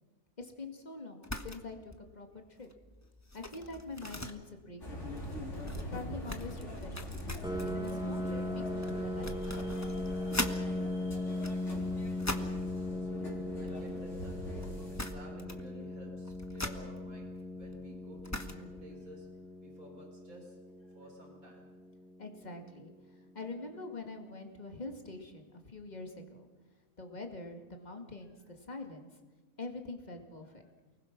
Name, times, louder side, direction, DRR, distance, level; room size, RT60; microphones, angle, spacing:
voice 1, 0.4-2.7 3.3-5.4 5.9-7.4 7.6-9.7 22.2-26.5 27.0-29.1 29.6-30.6, left 3 dB, 30° left, 4 dB, 2.3 m, -45 dB
sound 1, 1.2-1.6 1.9-2.2 2.5-10.6 11.2-12.6 13.5-14.3 14.6-14.7 15.0-15.7 16.0-18.8, left 1 dB, 10° left, 1.2 m, -42 dB
sound 2, 4.8-15.0, left 1 dB, 55° left, 4.2 m, -43 dB
Piano, 7.4-22.9, left 1 dB, 5° right, 1.6 m, -39 dB
voice 2, 8.0-8.3 13.3-19.3 19.6-21.6 28.4-28.5 30.4-30.7, right 1 dB, 80° right, 1 dB, 5.1 m, -54 dB
29.0 x 20.0 x 6.1 m, 1.3 s
omnidirectional pair, 1.5 m